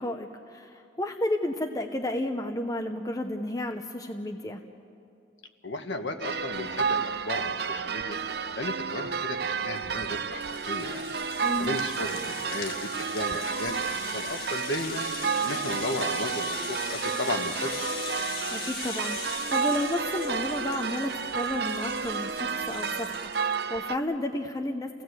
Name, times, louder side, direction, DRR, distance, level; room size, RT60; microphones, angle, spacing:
voice 1, 0.0-4.6 11.4-11.8 18.5-24.9, left 1 dB, 20° left, 4 dB, 0.8 m, -32 dB
voice 2, 5.6-8.2 8.6-11.1 11.6-13.8 14.1-15.1 15.4-17.8, left 2 dB, 70° left, 6 dB, 1.5 m, -34 dB
sound 1, 6.2-24.0, right 6 dB, 55° right, 0.6 m, -31 dB
Rattle (instrument), 9.4-23.6, left 5 dB, 50° left, 2.0 m, -40 dB
29.0 x 17.0 x 8.0 m, 2.5 s
head